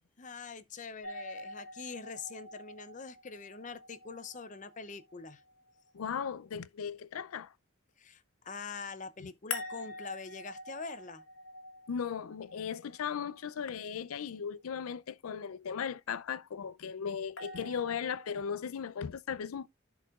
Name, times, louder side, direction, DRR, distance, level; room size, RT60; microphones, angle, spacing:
voice 1, 0.2-5.4 8.0-11.2, left 4 dB, 35° left, 0.6 m, -44 dB
sound 1, 1.0-6.0 9.5-13.6 17.4-18.6, left 3 dB, 65° left, 1.6 m, -46 dB
voice 2, 5.9-7.5 9.2-9.3 11.9-19.7, left 7 dB, 90° left, 0.4 m, -37 dB
14.5 x 4.8 x 2.4 m
head